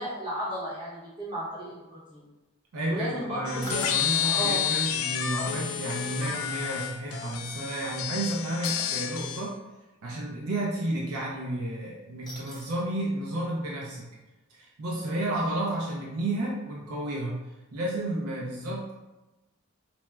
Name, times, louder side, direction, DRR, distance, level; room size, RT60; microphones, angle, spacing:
voice 1, 0.0-2.2 2.9-4.7, equal, 25° right, -10 dB, 0.7 m, -34 dB
voice 2, 2.7-9.6 10.0-14.1 14.5-17.3 17.7-18.9, right 1 dB, 85° right, -3 dB, 0.5 m, -31 dB
sound 1, 3.5-9.5, left 9 dB, 70° left, 0.3 m, -30 dB
sound 2, 3.6-4.3 6.6-6.7 8.6-9.0 12.2-12.9 13.3-13.4 13.8-13.9, right 1 dB, 20° left, 0.7 m, -42 dB
4.4 x 2.0 x 2.2 m, 1.1 s
head